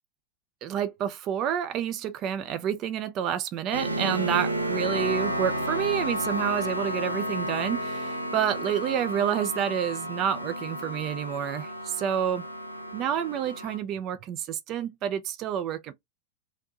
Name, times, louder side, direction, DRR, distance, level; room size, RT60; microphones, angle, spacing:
voice 1, 0.6-12.5 12.9-15.9, right 9 dB, 35° right, 0.4 m, -29 dB
sound 1, 3.7-13.8, equal, 90° right, 0.5 m, -32 dB
2.5 x 2.1 x 2.8 m
figure-of-eight pair, 90°, 0 cm